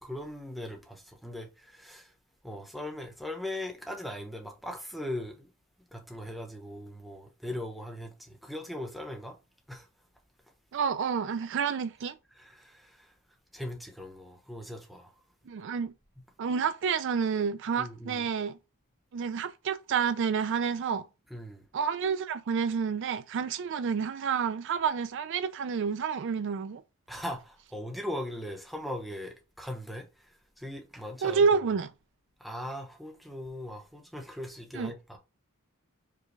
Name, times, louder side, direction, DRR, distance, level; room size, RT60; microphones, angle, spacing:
voice 1, 0.0-2.1 2.4-5.5 5.9-9.4 9.7-9.9 12.3-13.1 13.5-15.1 17.8-18.2 21.3-21.7 27.1-30.1 30.6-31.4 32.4-35.2, left 1 dB, ahead, 0.9 m, -39 dB
voice 2, 10.7-12.2 15.5-15.9 16.4-18.6 19.1-21.1 21.7-26.8 31.2-31.9 34.7-34.9, right 6 dB, 60° right, 0.4 m, -29 dB
5.0 x 2.3 x 3.3 m
head